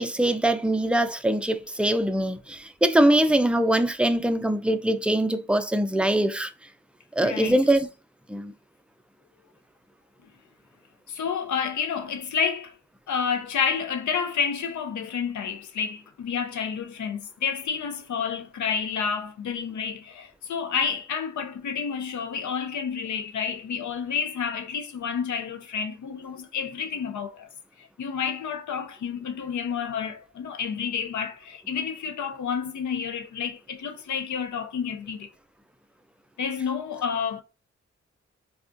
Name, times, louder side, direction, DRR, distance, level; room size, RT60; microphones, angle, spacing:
voice 1, 0.0-6.5 7.2-7.9 8.3-8.5, right 1 dB, 5° right, 0.4 m, -23 dB
voice 2, 7.2-7.6 11.1-12.8 13.1-27.5 27.8-35.3 36.4-37.4, left 6 dB, 70° left, 0.6 m, -30 dB
3.5 x 2.4 x 2.5 m
supercardioid pair, 40°, 30 cm